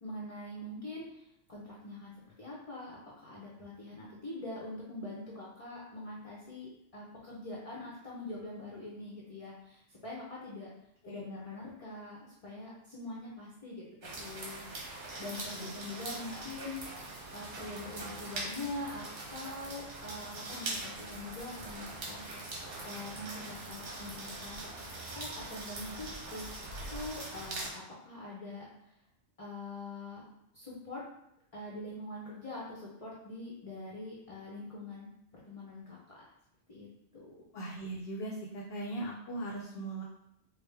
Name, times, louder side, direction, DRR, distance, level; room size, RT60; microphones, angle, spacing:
voice 1, 0.0-10.7 11.0-14.6 15.2-16.7 17.3-19.0 19.3-22.3 22.8-24.6 25.0-26.5 26.9-28.7 29.4-30.2 30.5-31.0 31.5-35.1 35.4-36.2 36.7-37.3, left 2 dB, 35° left, -5 dB, 0.7 m, -44 dB
sound 1, 14.0-27.7, right 2 dB, 75° right, 1.3 m, -42 dB
voice 2, 15.3-15.7 16.3-16.4 37.5-40.0, right 2 dB, 65° left, -4 dB, 0.8 m, -39 dB
4.9 x 2.1 x 3.3 m, 0.79 s
omnidirectional pair, 1.2 m